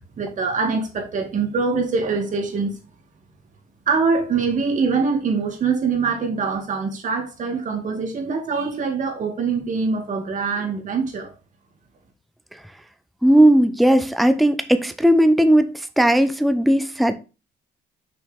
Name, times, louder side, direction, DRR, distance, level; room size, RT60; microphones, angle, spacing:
voice 1, 0.2-2.7 3.9-11.3, right 4 dB, 50° right, 2.4 m, -23 dB
voice 2, 13.2-17.2, right 1 dB, ahead, 0.6 m, -17 dB
6.3 x 6.2 x 3.5 m
cardioid pair, 110°, 17 cm